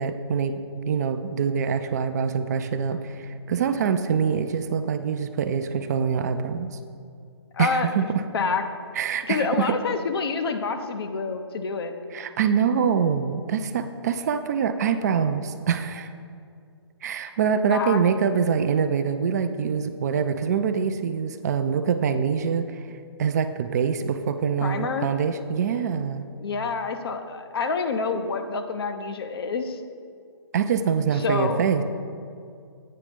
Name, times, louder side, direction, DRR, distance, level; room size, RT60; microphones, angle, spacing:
voice 1, 0.0-6.7 7.6-8.1 8.9-9.7 12.1-16.1 17.0-22.8 23.2-26.3 30.5-31.8, right 6 dB, 35° right, 9 dB, 0.4 m, -25 dB
voice 2, 7.5-7.9 8.3-8.6 9.3-11.9 17.7-18.0 24.6-25.1 26.4-29.8 31.2-31.6, left 4 dB, 55° left, 7 dB, 0.7 m, -27 dB
8.6 x 4.9 x 5.2 m, 2.4 s
figure-of-eight pair, 140°, 15 cm